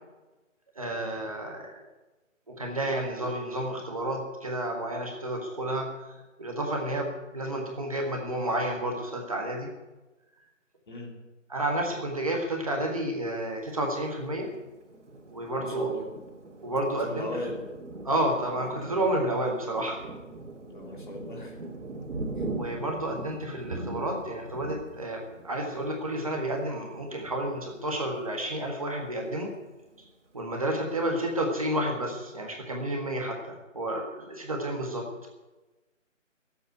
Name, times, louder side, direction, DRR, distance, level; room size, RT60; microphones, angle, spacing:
voice 1, 0.7-1.9 2.5-5.9 6.4-9.7 11.5-14.5 15.3-15.9 16.6-17.3 18.0-20.0 22.5-29.5 30.3-35.1, right 1 dB, 25° right, 0 dB, 1.6 m, -30 dB
voice 2, 10.9-11.2 15.6-16.1 17.0-17.7 20.7-21.5, left 1 dB, 40° left, 0 dB, 3.3 m, -37 dB
Thunder, 14.4-28.7 29.2-29.3 29.6-30.3, right 2 dB, 65° right, 2.9 m, -41 dB
15.0 x 8.5 x 9.3 m, 1.1 s
hypercardioid pair, 175°, 39 cm